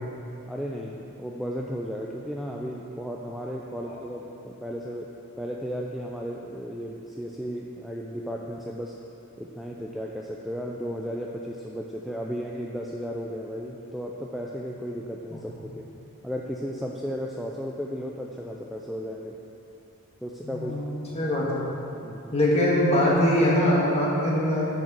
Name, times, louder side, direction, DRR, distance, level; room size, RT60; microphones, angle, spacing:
voice 1, 0.5-8.9 9.4-15.8 16.2-19.4 20.2-20.8 21.2-21.3 22.0-22.3, equal, ahead, -2 dB, 0.3 m, -34 dB
voice 2, 20.4-20.8 21.1-21.6 22.3-24.8, left 1 dB, 30° left, -5 dB, 1.6 m, -23 dB
8.9 x 4.6 x 5.9 m, 2.8 s
head